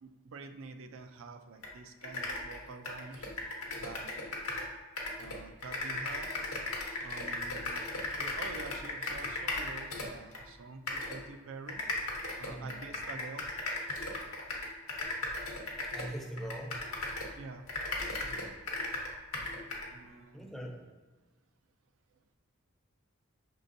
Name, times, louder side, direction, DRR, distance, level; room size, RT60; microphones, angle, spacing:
voice 1, 0.0-3.3 3.8-4.1 5.2-6.4 7.0-11.8 12.4-13.5 17.4-17.7 19.9-20.5, right 4 dB, 65° right, 8 dB, 0.4 m, -47 dB
sound 1, 1.6-1.7 2.0-4.7 5.0-10.4 10.9-11.2 11.7-17.4 17.7-19.9, left 2 dB, 85° left, 0.9 m, -37 dB
voice 2, 12.5-12.9 15.8-17.0 18.2-18.6 19.6-19.7 20.3-21.0, right 1 dB, ahead, 0 dB, 0.5 m, -43 dB
5.3 x 3.3 x 2.6 m, 1.3 s
head